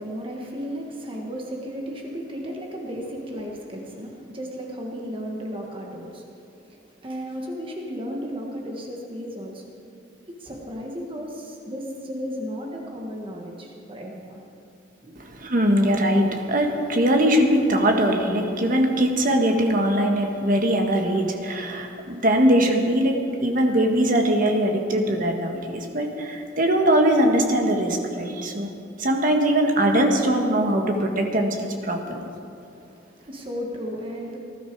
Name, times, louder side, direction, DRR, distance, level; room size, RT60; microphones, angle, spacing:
voice 1, 0.0-9.7 10.4-14.6 15.0-15.2 32.7-34.4, equal, 30° right, 0 dB, 1.5 m, -34 dB
voice 2, 15.2-28.7 29.0-32.2, right 1 dB, 50° right, 3 dB, 1.6 m, -21 dB
19.0 x 12.0 x 4.7 m, 2.6 s
head